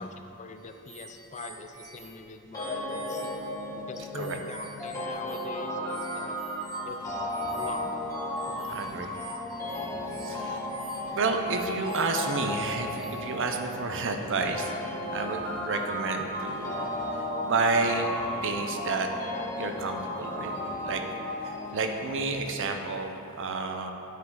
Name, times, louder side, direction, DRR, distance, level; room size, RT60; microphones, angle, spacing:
voice 1, 0.0-3.4 3.7-6.4 6.8-7.9 8.5-9.1 9.5-9.6, left 3 dB, 30° left, 6 dB, 0.4 m, -43 dB
sound 1, 0.6-13.5, right 5 dB, 75° right, 1.3 m, -50 dB
sound 2, 2.5-21.8, left 1 dB, 15° left, 1.8 m, -34 dB
sound 3, 6.8-23.0, equal, 5° right, 1.2 m, -50 dB
voice 2, 8.7-9.1 10.2-10.6 11.1-14.7 15.1-16.8 17.1-18.1 18.4-19.1 19.6-20.5 20.8-21.0 21.4-23.9, right 3 dB, 55° right, 5 dB, 0.6 m, -30 dB
9.2 x 7.5 x 3.8 m, 2.8 s
head